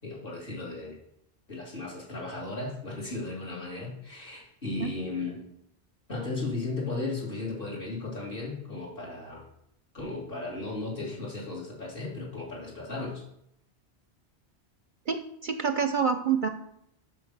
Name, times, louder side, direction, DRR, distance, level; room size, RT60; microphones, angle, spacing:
voice 1, 0.0-1.0 1.5-5.4 6.1-9.5 9.9-13.2, left 3 dB, 50° left, -4 dB, 2.9 m, -35 dB
voice 2, 15.1-16.5, right 6 dB, 55° right, 8 dB, 0.6 m, -27 dB
7.7 x 6.2 x 6.6 m, 0.74 s
omnidirectional pair, 1.2 m